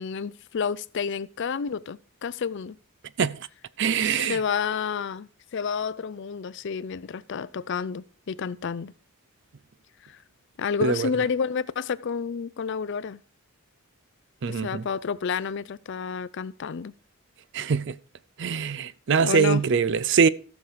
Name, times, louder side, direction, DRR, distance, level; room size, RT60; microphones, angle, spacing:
voice 1, 0.0-2.8 4.0-8.9 10.1-10.2 10.6-13.2 14.5-16.9 19.2-19.6, left 6 dB, 55° left, 0.4 m, -30 dB
voice 2, 3.8-4.4 10.8-11.1 14.4-14.9 17.5-18.0 18.4-20.3, right 6 dB, 55° right, 0.4 m, -23 dB
14.0 x 6.5 x 4.7 m
head